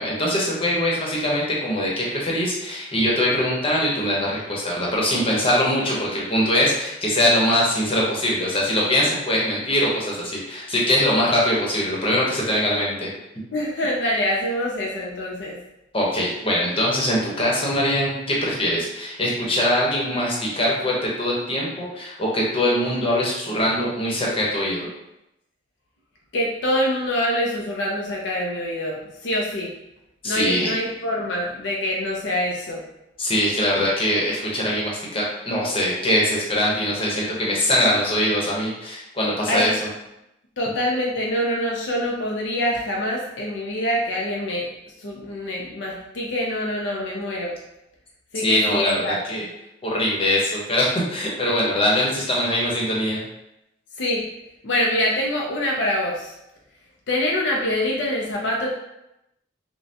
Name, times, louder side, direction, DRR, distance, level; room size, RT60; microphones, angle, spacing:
voice 1, 0.0-13.1 15.9-24.9 30.2-30.7 33.2-39.9 48.4-49.4 49.8-53.2, left 1 dB, 30° left, -4 dB, 1.0 m, -22 dB
voice 2, 13.5-15.6 26.3-29.7 30.2-32.8 39.5-39.7 40.6-44.7 45.0-47.5 48.3-49.2 54.0-54.2 54.6-56.3 57.1-58.7, left 1 dB, 70° left, -2 dB, 0.6 m, -25 dB
5.3 x 2.2 x 2.8 m, 0.87 s
head